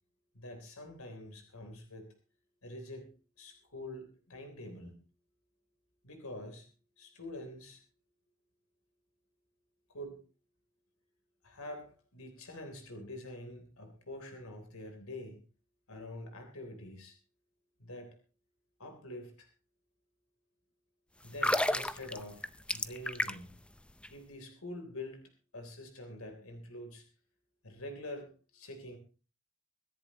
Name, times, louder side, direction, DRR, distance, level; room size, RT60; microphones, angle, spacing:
voice 1, 0.3-2.1 2.6-5.0 6.0-6.7 7.0-7.8 9.9-10.2 11.4-15.4 15.9-17.1 17.8-18.2 18.8-19.5 21.2-23.5 24.1-25.2 25.5-27.0 27.6-29.0, left 1 dB, 85° left, 4 dB, 3.5 m, -46 dB
sound 1, 21.3-23.6 23.9-24.1, left 1 dB, 5° left, 0.6 m, -32 dB
24.5 x 11.0 x 3.0 m, 0.34 s
head